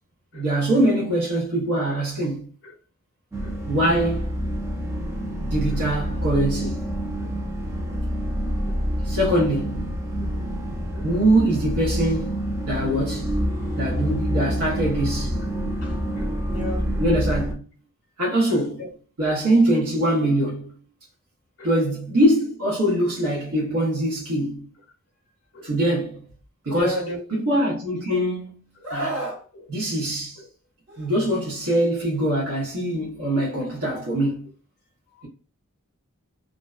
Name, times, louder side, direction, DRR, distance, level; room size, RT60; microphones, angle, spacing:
voice 1, 0.3-2.5 3.7-4.3 5.4-6.9 9.0-9.9 11.0-13.4 13.8-15.4 17.0-17.6 18.2-18.8 19.2-20.8 21.6-24.7 25.6-26.2 26.6-27.0 27.5-28.6 28.9-29.2 29.7-30.4 31.0-34.5, right 1 dB, 75° right, 0.8 m, -23 dB
sound 1, 3.3-17.5, equal, 15° right, 0.4 m, -27 dB
voice 2, 3.4-4.1 4.9-5.1 5.7-5.8 7.2-7.4 7.9-8.0 8.6-8.8 10.2-10.5 10.9-11.1 15.8-17.1 18.5-18.9 19.3-19.4 21.6-21.8 25.5-25.7 26.7-27.2 27.5-27.6 28.8-29.0 29.5-29.7 30.4-30.5 35.1-35.3, left 2 dB, 50° left, 0.6 m, -37 dB
Screaming, 28.8-29.4 30.9-31.1, right 1 dB, 50° right, 1.3 m, -30 dB
2.5 x 2.1 x 2.3 m
head